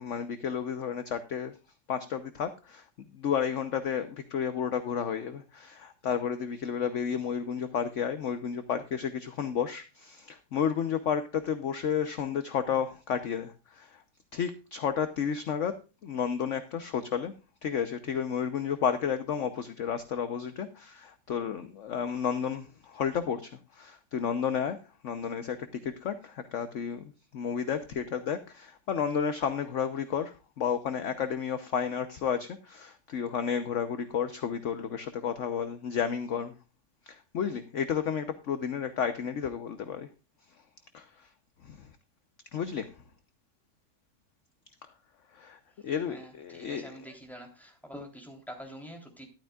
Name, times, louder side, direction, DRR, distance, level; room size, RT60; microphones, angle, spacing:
voice 1, 0.0-1.5 1.9-2.8 3.1-14.0 14.3-15.7 16.0-17.3 17.6-24.8 25.0-25.6 25.8-36.5 37.1-40.1 40.9-41.3 41.6-41.9 42.5-42.9 45.3-47.1, left 7 dB, 55° left, 1.1 m, -32 dB
voice 2, 46.0-49.3, equal, ahead, 3.3 m, -46 dB
13.5 x 12.0 x 2.4 m
omnidirectional pair, 1.7 m